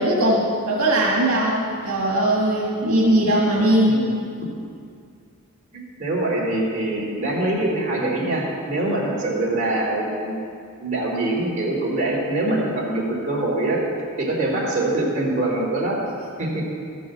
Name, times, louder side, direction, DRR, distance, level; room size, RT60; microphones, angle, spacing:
voice 1, 0.0-4.0, right 1 dB, 75° right, -4 dB, 1.8 m, -19 dB
voice 2, 3.8-4.3 6.0-10.4 10.8-13.8 14.2-16.0 16.4-16.6, right 2 dB, 35° right, -6 dB, 3.4 m, -24 dB
13.5 x 6.2 x 7.4 m, 2.3 s
head